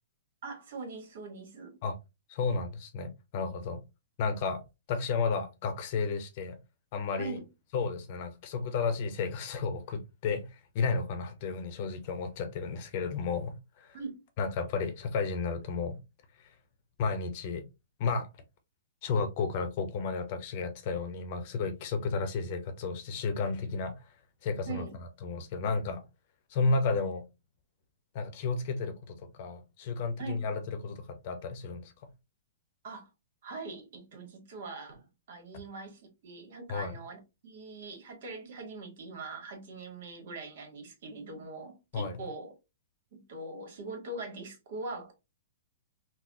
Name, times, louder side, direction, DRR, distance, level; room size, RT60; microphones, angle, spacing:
voice 1, 0.4-1.8 7.2-7.4 13.9-14.2 24.7-25.0 30.2-30.5 32.8-33.1 33.4-42.5 43.1-45.1, right 3 dB, 65° right, 1.5 m, -42 dB
voice 2, 2.3-3.8 4.2-4.6 4.9-6.6 6.9-7.4 7.7-14.0 14.4-16.0 16.4-16.5 17.0-17.6 18.0-18.3 19.0-24.0 24.4-24.8 25.2-26.0 26.5-27.2 28.1-31.9 36.7-36.9 41.9-42.2, left 4 dB, 45° left, 0.7 m, -32 dB
3.9 x 2.2 x 2.7 m
hypercardioid pair, 140°, 0 cm